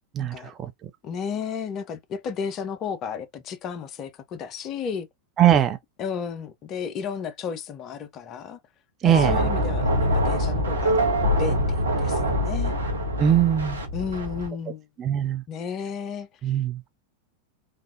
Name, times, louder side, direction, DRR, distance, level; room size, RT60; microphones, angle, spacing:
voice 1, 0.2-0.5 1.0-5.1 6.0-8.6 9.0-11.0 11.4-12.7 13.9-14.8 15.5-16.5, left 6 dB, 35° left, 0.5 m, -33 dB
voice 2, 5.4-5.8 9.0-9.4 13.2-13.8 15.0-15.4 16.4-16.8, right 10 dB, 30° right, 0.5 m, -20 dB
sound 1, 9.1-14.5, equal, 75° right, 1.0 m, -24 dB
3.3 x 2.4 x 2.5 m
figure-of-eight pair, 90°, 0 cm